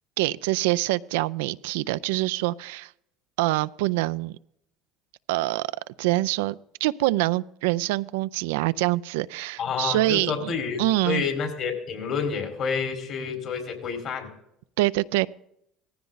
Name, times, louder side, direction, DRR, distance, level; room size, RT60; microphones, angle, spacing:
voice 1, 0.2-2.9 3.4-4.4 5.3-5.7 6.0-11.2 14.8-15.3, right 18 dB, 80° right, 16 dB, 0.4 m, -25 dB
voice 2, 9.6-14.3, left 6 dB, 55° left, 4 dB, 4.7 m, -29 dB
18.5 x 15.0 x 4.0 m, 0.76 s
supercardioid pair, 85°, 0 cm